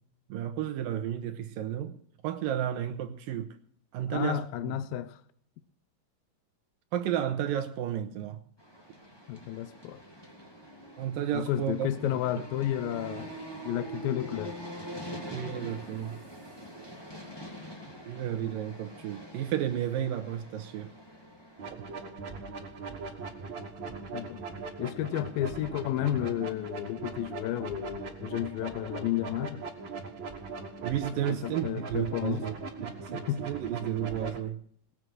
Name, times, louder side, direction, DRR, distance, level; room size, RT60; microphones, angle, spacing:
voice 1, 0.3-1.9 2.2-3.5 3.9-4.7 6.9-8.4 11.0-11.9 12.4-12.5 15.3-16.1 18.1-20.9 30.8-32.5 32.8-34.6, right 10 dB, 75° right, 2.3 m, -32 dB
voice 2, 4.1-5.2 9.3-10.0 11.3-13.3 13.6-14.6 24.1-24.4 24.8-29.6 31.3-32.5 33.1-33.5, left 12 dB, 75° left, 2.2 m, -32 dB
sound 1, 8.6-21.7, right 1 dB, 10° left, 2.0 m, -44 dB
sound 2, 21.6-34.4, right 4 dB, 35° right, 2.4 m, -40 dB
20.0 x 8.0 x 6.2 m
omnidirectional pair, 4.6 m